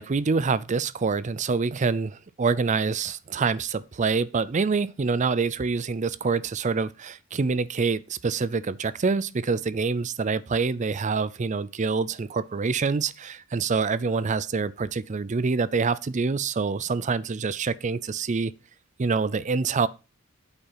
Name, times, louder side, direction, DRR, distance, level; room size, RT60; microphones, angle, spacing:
voice 1, 0.0-18.5 19.0-19.9, right 4 dB, 35° right, 0.5 m, -26 dB
8.3 x 5.5 x 5.7 m
head